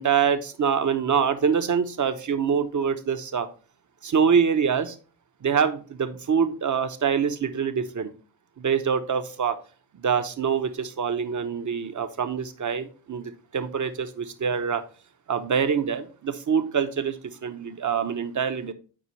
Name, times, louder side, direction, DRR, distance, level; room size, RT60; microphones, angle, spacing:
voice 1, 0.0-3.5 4.0-4.9 5.4-8.1 8.6-9.5 10.0-14.8 15.3-18.7, right 6 dB, 50° right, 10 dB, 0.9 m, -25 dB
8.7 x 4.5 x 3.2 m, 0.37 s
cardioid pair, 70°, 40 cm